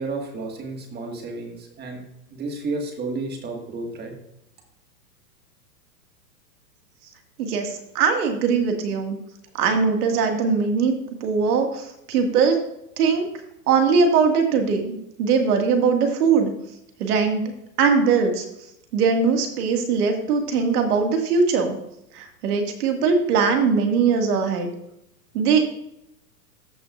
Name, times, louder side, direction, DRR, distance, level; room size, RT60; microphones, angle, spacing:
voice 1, 0.0-2.0 2.3-4.1, right 3 dB, 20° right, 3 dB, 1.8 m, -31 dB
voice 2, 7.4-9.2 9.6-10.9 11.2-12.6 13.0-13.3 13.7-16.5 17.0-17.5 17.8-18.4 18.9-21.8 22.1-24.7 25.3-25.6, right 5 dB, 65° right, 4 dB, 2.2 m, -21 dB
14.0 x 6.1 x 2.5 m, 0.81 s
hypercardioid pair, 135°, 50 cm